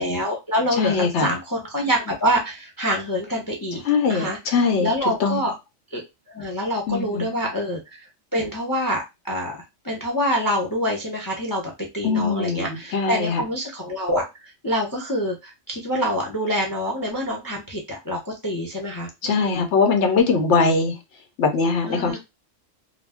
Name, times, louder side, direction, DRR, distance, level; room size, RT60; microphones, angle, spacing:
voice 1, 0.0-3.8 4.1-5.5 5.9-6.0 6.3-7.8 8.3-9.6 9.8-19.1 19.4-19.7 21.9-22.2, equal, 25° left, 0 dB, 0.4 m, -26 dB
voice 2, 0.8-1.3 3.8-4.9 5.2-5.4 6.9-7.3 12.0-13.4 19.2-20.9 21.4-22.2, left 4 dB, 70° left, 5 dB, 0.9 m, -21 dB
2.5 x 2.1 x 3.3 m, 0.22 s
omnidirectional pair, 1.3 m